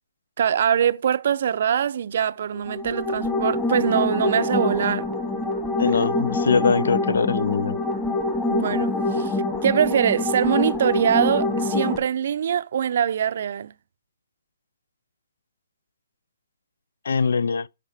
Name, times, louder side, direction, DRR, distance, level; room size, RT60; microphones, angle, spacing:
voice 1, 0.4-5.1 6.0-6.1 8.5-9.4 9.6-13.7, right 8 dB, 55° right, 0.5 m, -23 dB
sound 1, 2.5-12.0, left 2 dB, 10° left, 1.7 m, -25 dB
voice 2, 5.8-7.8 17.1-17.7, left 5 dB, 70° left, 0.3 m, -22 dB
11.5 x 4.9 x 3.4 m
hypercardioid pair, 145°, 0 cm